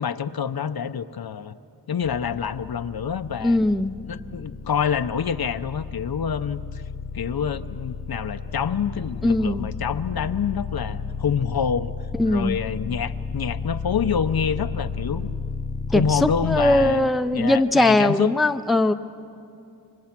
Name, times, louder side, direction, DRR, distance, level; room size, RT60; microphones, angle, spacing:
voice 1, 0.0-1.6 1.9-3.6 4.1-6.8 7.1-11.9 12.2-15.3 15.9-17.1 17.3-18.3, left 7 dB, 65° left, 11 dB, 0.7 m, -27 dB
sound 1, 2.0-16.9, left 4 dB, 25° left, 0.9 m, -33 dB
voice 2, 3.4-3.9 9.2-9.7 12.2-12.6 15.9-18.9, left 1 dB, ahead, 9 dB, 0.5 m, -20 dB
28.0 x 24.5 x 6.0 m, 2.7 s
wide cardioid pair, 100°, 40 cm